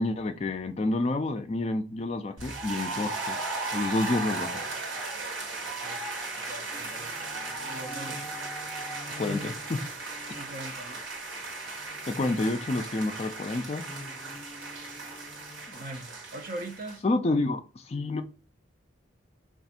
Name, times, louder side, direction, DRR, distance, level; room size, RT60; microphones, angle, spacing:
voice 1, 0.0-3.4 3.7-4.6 9.2-9.8 12.1-13.8 15.7-15.8 17.0-18.2, left 2 dB, 30° left, 0.3 m, -29 dB
sound 1, 2.4-17.0, right 3 dB, 85° right, 1.0 m, -36 dB
voice 2, 5.6-6.0 6.3-8.2 9.2-9.4 10.4-11.0 15.8-17.0, right 1 dB, 45° right, 0.6 m, -42 dB
sound 2, 6.7-12.7 13.8-15.7, left 1 dB, 30° right, 1.9 m, -47 dB
3.4 x 2.4 x 4.0 m
head